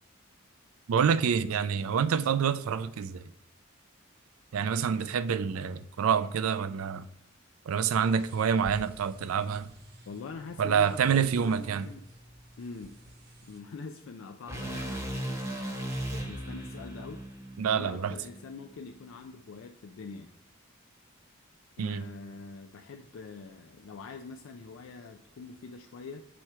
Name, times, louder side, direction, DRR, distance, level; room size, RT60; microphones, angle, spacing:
voice 1, 0.9-3.2 4.5-7.0 7.7-9.7 10.6-11.9 17.6-18.1 21.8-22.0, right 7 dB, 90° right, 0.4 m, -27 dB
sound 1, 7.9-13.6, right 1 dB, 50° right, 1.0 m, -51 dB
voice 2, 10.1-12.0 12.6-13.0 13.4-15.7 16.1-17.2 17.6-20.3 21.8-26.2, left 4 dB, 75° left, 0.4 m, -44 dB
sound 2, 14.5-18.7, right 1 dB, 15° right, 1.0 m, -37 dB
6.3 x 4.3 x 4.6 m
head